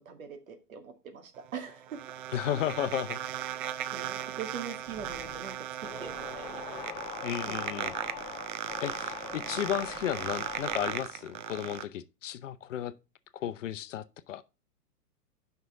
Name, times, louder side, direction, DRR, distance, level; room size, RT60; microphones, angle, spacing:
voice 1, 0.0-2.0 3.9-6.6 7.4-8.0, right 6 dB, 60° right, 2.1 m, -43 dB
sound 1, 1.4-11.8, right 12 dB, 30° right, 0.6 m, -37 dB
voice 2, 2.3-3.2 7.2-7.9 8.8-12.9 13.3-14.4, left 11 dB, 50° left, 0.7 m, -34 dB
sound 2, 4.9-11.2, left 6 dB, 5° left, 0.4 m, -43 dB
9.2 x 5.9 x 3.5 m
figure-of-eight pair, 110°, 47 cm